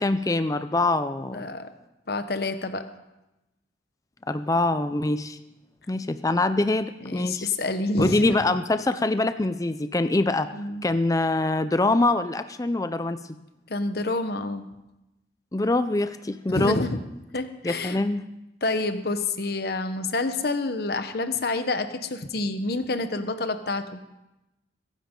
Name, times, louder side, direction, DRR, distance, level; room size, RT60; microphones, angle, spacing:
voice 1, 0.0-1.4 4.3-5.4 5.9-7.5 8.0-10.5 10.8-13.2 15.5-16.8 17.6-18.2, left 2 dB, 20° left, 11 dB, 0.4 m, -24 dB
voice 2, 1.3-1.7 2.1-2.8 7.0-8.4 10.5-10.8 13.7-14.7 16.5-17.0 17.3-18.0 18.6-24.0, left 2 dB, 55° left, 9 dB, 1.0 m, -28 dB
22.5 x 10.5 x 3.8 m, 0.96 s
head